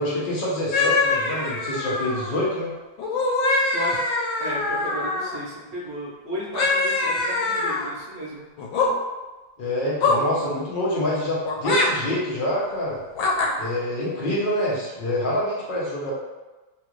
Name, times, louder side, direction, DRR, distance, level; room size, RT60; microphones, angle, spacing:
voice 1, 0.0-2.7 9.6-13.0 13.6-16.1, left 1 dB, 65° left, -7 dB, 0.5 m, -26 dB
sound 1, 0.7-2.4 3.0-5.4 6.5-7.9 8.6-8.9 10.0-10.3 11.5-11.9 13.2-13.5, left 3 dB, 85° left, 1.3 m, -23 dB
voice 2, 4.4-8.5, equal, 50° right, -5 dB, 1.0 m, -34 dB
3.2 x 2.4 x 3.0 m, 1.2 s
omnidirectional pair, 2.1 m